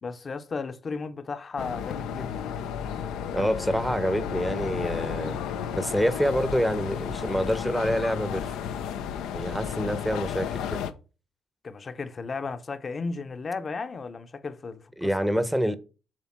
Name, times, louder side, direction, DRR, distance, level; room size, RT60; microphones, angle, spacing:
voice 1, 0.0-2.3 11.6-15.1, left 4 dB, 40° left, 0.9 m, -34 dB
sound 1, 1.6-10.9, left 8 dB, 85° left, 0.6 m, -33 dB
voice 2, 3.3-5.4 5.7-8.6 9.3-10.8 15.0-15.8, equal, 5° right, 0.9 m, -27 dB
7.5 x 3.4 x 5.9 m
supercardioid pair, 70°, 0 cm